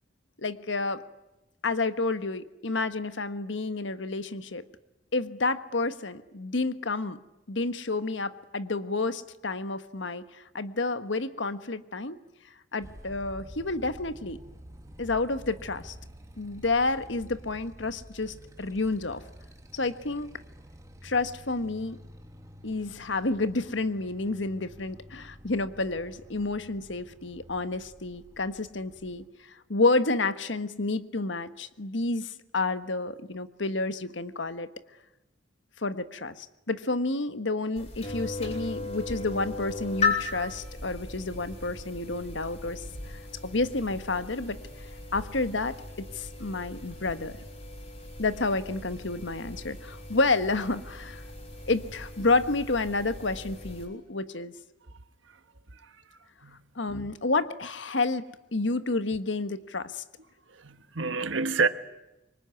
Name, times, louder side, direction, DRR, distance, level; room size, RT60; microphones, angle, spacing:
voice 1, 0.4-1.0 1.6-4.6 5.1-7.2 7.5-12.2 12.7-14.4 15.0-15.9 16.4-19.2 19.7-20.3 21.0-22.0 22.6-29.2 29.7-34.7 35.8-44.6 45.1-47.4 48.2-51.2 51.7-54.5 56.7-60.0, left 3 dB, 75° left, 1.4 m, -30 dB
Motorcycle, 12.8-29.3, equal, 15° right, 2.0 m, -49 dB
sound 1, 37.8-53.9, left 3 dB, 35° left, 6.6 m, -37 dB
voice 2, 60.5-61.7, right 4 dB, 80° right, 1.5 m, -28 dB
26.0 x 24.0 x 9.5 m
head